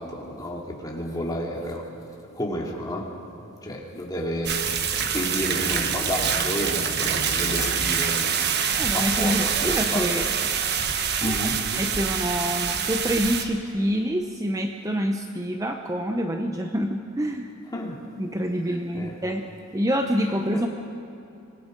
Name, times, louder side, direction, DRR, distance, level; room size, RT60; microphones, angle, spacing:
voice 1, 0.0-1.9 2.3-3.2 3.6-8.4 8.9-10.4 11.2-11.7 17.7-18.1 18.9-19.2 20.5-20.7, left 1 dB, 20° left, -2 dB, 2.7 m, -31 dB
sound 1, 4.4-13.4, right 7 dB, 50° right, 1.2 m, -25 dB
voice 2, 8.8-10.3 11.2-11.4 11.7-17.6 18.2-20.7, equal, 15° right, 4 dB, 0.7 m, -27 dB
25.5 x 19.5 x 5.2 m, 2.8 s
head